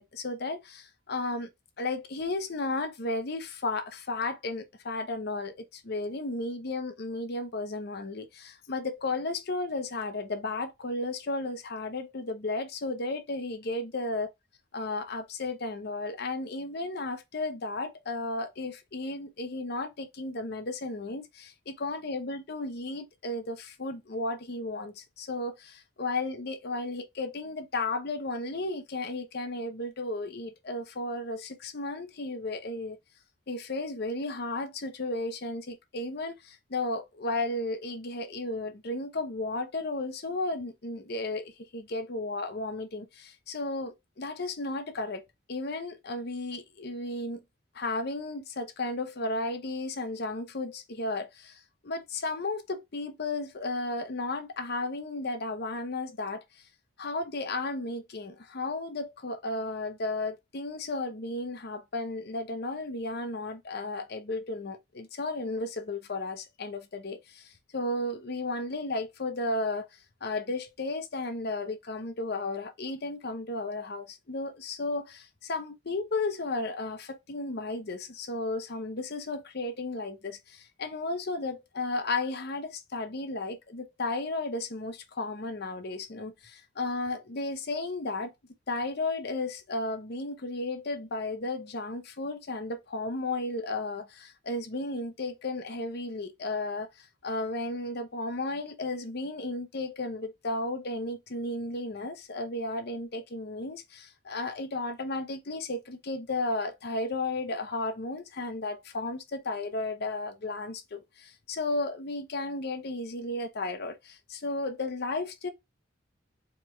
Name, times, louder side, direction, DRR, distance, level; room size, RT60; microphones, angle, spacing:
voice 1, 0.0-1.5 1.8-14.3 14.7-33.0 33.5-47.4 47.7-56.6 57.0-69.9 70.2-88.3 88.7-115.5, left 2 dB, 55° left, 0.7 m, -34 dB
4.6 x 3.4 x 2.2 m
head